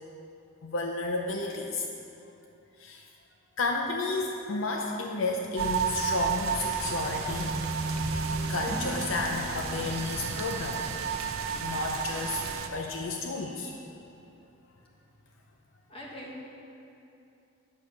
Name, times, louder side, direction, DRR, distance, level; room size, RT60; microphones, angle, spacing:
voice 1, 0.6-1.9 2.8-3.0 3.6-7.5 8.0-8.2 8.5-10.8 11.6-12.4 12.7-13.7, left 3 dB, 65° left, 1 dB, 0.6 m, -32 dB
sound 1, 5.6-12.7, right 5 dB, 85° right, 0.7 m, -31 dB
sound 2, 8.7-10.2, equal, 5° left, 1.9 m, -40 dB
voice 2, 15.9-16.4, left 1 dB, 25° left, -3 dB, 1.3 m, -42 dB
8.4 x 6.7 x 5.9 m, 2.8 s
head